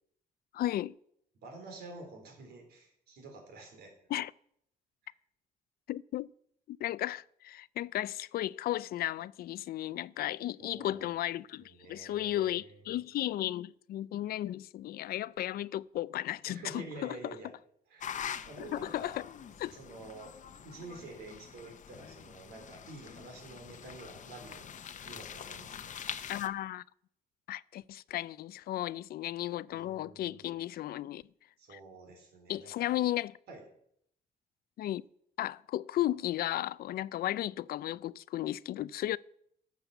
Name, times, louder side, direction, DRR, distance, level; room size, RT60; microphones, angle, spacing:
voice 1, 0.5-1.0 4.1-4.3 5.9-6.3 6.7-17.3 18.6-19.3 19.6-19.7 26.3-26.8 27.5-31.2 31.7-31.8 32.5-33.4 34.8-35.0 35.4-39.2, left 13 dB, 70° left, 0.4 m, -34 dB
voice 2, 1.4-3.9 10.6-11.2 11.6-13.0 16.5-17.5 17.9-19.2 19.7-20.3 20.6-26.0 29.7-30.5 31.6-32.9 33.5-33.6, right 3 dB, 85° right, 3.9 m, -49 dB
sound 1, 18.0-26.5, left 8 dB, 50° left, 0.8 m, -44 dB
12.5 x 7.0 x 7.1 m
cardioid pair, 110°, 16 cm